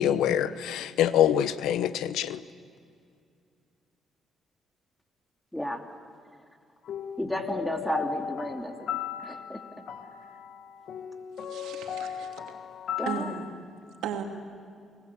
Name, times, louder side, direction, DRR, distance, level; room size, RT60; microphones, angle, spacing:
voice 1, 0.0-2.4, left 10 dB, 85° left, 14 dB, 0.9 m, -25 dB
voice 2, 5.5-5.9 7.2-9.6 13.0-13.4, equal, 5° left, 5 dB, 2.7 m, -33 dB
sound 1, 6.8-13.5, left 9 dB, 70° left, 2.2 m, -37 dB
voice 3, 11.4-12.5 13.1-13.5 14.0-14.2, right 8 dB, 90° right, 3 dB, 3.0 m, -36 dB
30.0 x 20.0 x 8.4 m, 2.3 s
cardioid pair, 90°, 0 cm